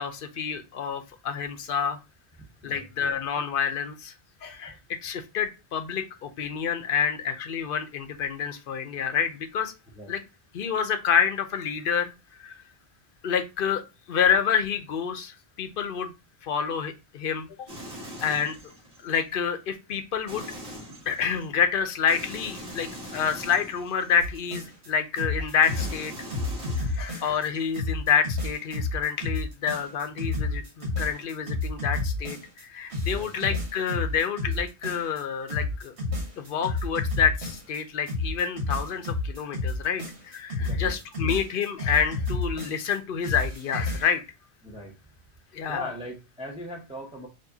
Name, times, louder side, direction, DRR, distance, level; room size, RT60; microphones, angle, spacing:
voice 1, 0.0-2.0 2.6-4.1 4.4-9.7 10.1-10.2 10.5-12.6 13.2-13.8 14.1-16.1 16.4-17.7 18.2-18.6 19.0-20.5 21.1-26.1 26.8-35.9 36.4-44.2 45.5-45.9, left 7 dB, 60° left, 9 dB, 0.8 m, -28 dB
sound 1, 17.7-19.2 20.3-21.5 22.1-24.7 25.6-27.6, equal, 60° right, 1.7 m, -42 dB
sound 2, 24.2-24.9 25.2-27.5 27.7-32.6 32.9-35.2 35.5-37.8 38.1-43.0 43.2-44.1, left 2 dB, 80° right, 1.5 m, -30 dB
voice 2, 40.6-41.0 44.6-44.9 45.7-47.3, left 1 dB, 5° right, -3 dB, 0.7 m, -39 dB
4.6 x 2.7 x 2.6 m, 0.27 s
omnidirectional pair, 1.1 m